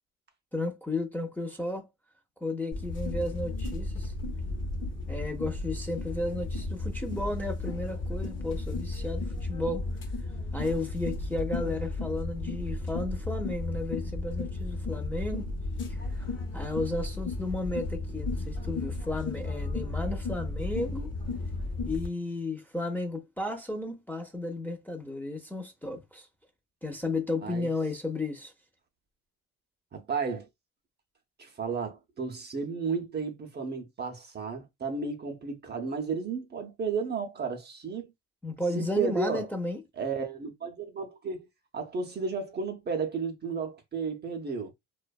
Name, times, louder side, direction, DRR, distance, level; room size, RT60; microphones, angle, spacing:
voice 1, 0.5-1.9 2.4-4.1 5.1-9.9 10.5-15.5 15.9-21.1 21.9-26.3 26.8-28.5 38.4-39.8, left 2 dB, 5° left, 0.6 m, -33 dB
sound 1, 2.7-22.1, left 2 dB, 40° left, 0.9 m, -34 dB
voice 2, 29.9-30.5 31.4-38.1 38.8-39.5 40.0-41.5 41.7-44.7, right 5 dB, 35° right, 0.6 m, -33 dB
2.5 x 2.2 x 2.2 m
cardioid pair, 90°, 30 cm